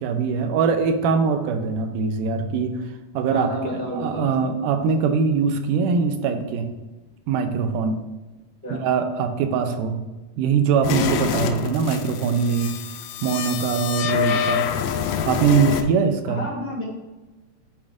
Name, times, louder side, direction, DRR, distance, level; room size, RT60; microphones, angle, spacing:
voice 1, 0.0-2.8 3.1-3.5 3.9-6.7 7.3-8.0 8.7-10.0 10.4-12.7 13.2-14.7 15.3-16.4, right 5 dB, 90° right, 7 dB, 2.2 m, -22 dB
voice 2, 3.3-4.3 8.6-8.8 16.2-16.8, equal, 15° left, -4 dB, 0.4 m, -30 dB
sound 1, 10.8-15.8, left 8 dB, 80° left, 1.7 m, -26 dB
10.0 x 4.1 x 2.5 m, 1.2 s
omnidirectional pair, 3.7 m